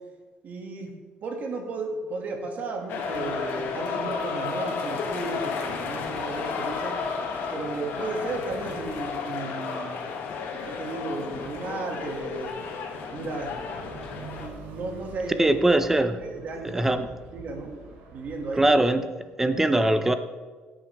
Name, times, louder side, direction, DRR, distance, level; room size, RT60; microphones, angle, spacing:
voice 1, 0.4-0.9 1.2-7.0 7.5-10.0 10.7-12.6 13.1-13.6 14.4-15.5 16.2-16.9 17.3-17.8 18.1-18.7, right 3 dB, 50° right, 1 dB, 2.3 m, -34 dB
sound 1, 2.9-14.5, left 5 dB, 75° left, 1.9 m, -32 dB
sound 2, 13.1-18.9, right 4 dB, 90° right, 3.3 m, -46 dB
voice 2, 15.4-16.2 16.6-17.1 18.5-19.1 19.4-20.1, right 1 dB, 10° right, 10 dB, 0.7 m, -21 dB
18.5 x 8.7 x 3.6 m, 1.4 s
cardioid pair, 120°, 3 cm